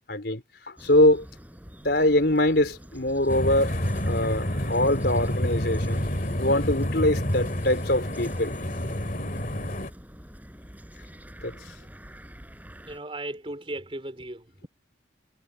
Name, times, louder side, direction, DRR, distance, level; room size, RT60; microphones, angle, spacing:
voice 1, 0.1-1.2 1.8-3.8 4.1-6.0 6.4-8.5 11.4-11.5, left 1 dB, 60° left, 4.4 m, -23 dB
sound 1, 0.8-13.0, equal, 10° right, 6.6 m, -46 dB
sound 2, 3.3-9.9, left 1 dB, 45° left, 2.6 m, -29 dB
voice 2, 12.9-14.7, right 1 dB, 30° right, 4.3 m, -37 dB
head